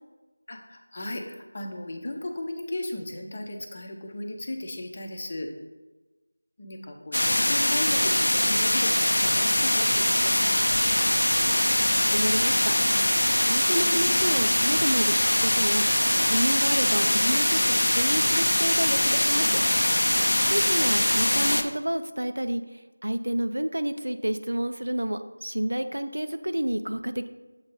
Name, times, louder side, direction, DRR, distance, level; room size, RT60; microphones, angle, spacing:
voice 1, 0.5-5.5 6.6-10.6, left 1 dB, 35° left, 3 dB, 0.6 m, -36 dB
sound 1, 7.1-21.6, left 1 dB, 80° left, 0.5 m, -22 dB
voice 2, 11.8-12.7 13.5-19.6 20.5-27.3, right 1 dB, 80° right, 9 dB, 0.5 m, -30 dB
7.1 x 2.6 x 5.4 m, 1.2 s
figure-of-eight pair, 175°, 0 cm